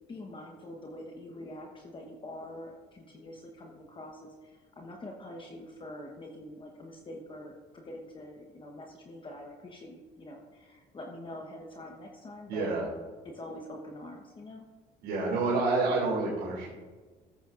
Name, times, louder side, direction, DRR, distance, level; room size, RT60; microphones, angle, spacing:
voice 1, 0.1-12.7 13.2-14.7, left 1 dB, 30° left, 1 dB, 1.2 m, -45 dB
voice 2, 12.5-12.9 15.0-16.7, right 3 dB, 85° right, -6 dB, 2.6 m, -28 dB
14.0 x 8.3 x 2.6 m, 1.3 s
cardioid pair, 110°, 17 cm